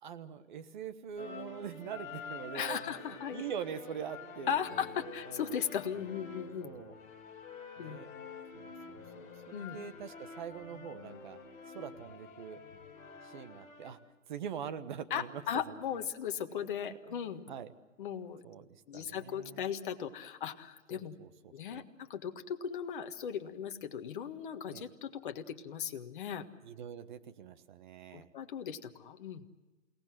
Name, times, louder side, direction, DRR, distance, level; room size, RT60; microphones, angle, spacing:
voice 1, 0.0-5.5 6.6-7.0 7.8-8.1 8.5-11.4 11.7-12.6 13.2-14.0 14.3-16.1 16.8-17.2 17.5-17.7 18.4-19.7 20.9-21.3 21.7-21.8 24.7-24.9 26.6-28.3, right 8 dB, 35° right, 11 dB, 1.3 m, -44 dB
sound 1, 1.2-13.9, left 5 dB, 20° left, 3.7 m, -48 dB
voice 2, 2.5-3.4 4.5-6.7 7.8-8.0 9.5-9.8 15.1-17.4 18.0-18.4 18.9-21.1 21.5-26.5 28.1-29.4, left 8 dB, 40° left, 7 dB, 1.6 m, -37 dB
29.0 x 18.5 x 7.5 m, 1.2 s
hypercardioid pair, 150°, 40 cm